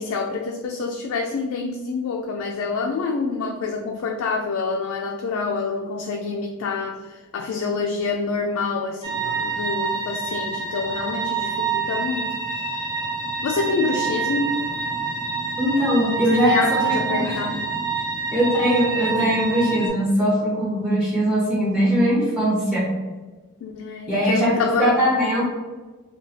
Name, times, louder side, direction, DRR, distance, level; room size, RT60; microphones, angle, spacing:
voice 1, 0.0-12.9 13.4-14.5 16.3-17.6 23.6-25.0, left 4 dB, 75° left, 1 dB, 0.3 m, -27 dB
sound 1, 9.0-19.9, right 5 dB, 20° right, 0.9 m, -27 dB
voice 2, 15.6-17.5 18.3-22.9 24.1-25.4, equal, ahead, -6 dB, 0.5 m, -21 dB
2.9 x 2.3 x 2.7 m, 1.3 s
head